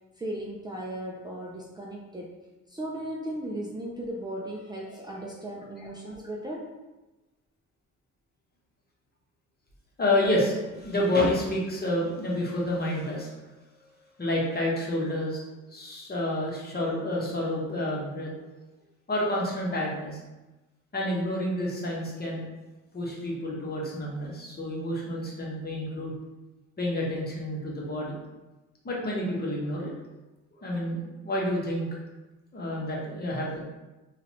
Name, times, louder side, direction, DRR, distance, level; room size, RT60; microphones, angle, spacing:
voice 1, 0.2-2.3 2.7-6.7, right 1 dB, 15° right, -4 dB, 0.4 m, -36 dB
voice 2, 10.0-13.3 13.8-13.9 14.2-15.4 15.7-18.3 19.1-20.2 20.9-22.4 22.9-26.1 26.8-28.1 28.8-29.9 30.6-31.9 32.5-33.6, left 1 dB, 30° left, -4 dB, 1.1 m, -29 dB
3.8 x 2.4 x 2.9 m, 1.1 s
cardioid pair, 90°, 30 cm